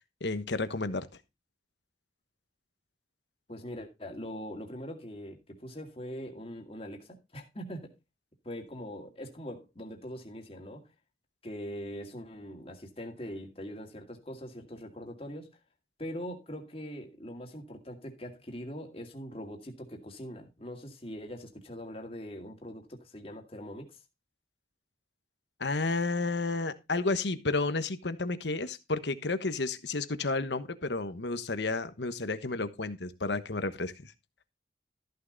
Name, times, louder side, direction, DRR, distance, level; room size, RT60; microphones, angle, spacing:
voice 1, 0.2-1.1 25.6-34.1, left 3 dB, 80° left, 1.2 m, -31 dB
voice 2, 3.5-7.9 8.4-10.9 11.4-15.5 16.0-24.0, equal, 30° left, 2.2 m, -42 dB
14.0 x 6.7 x 3.9 m
head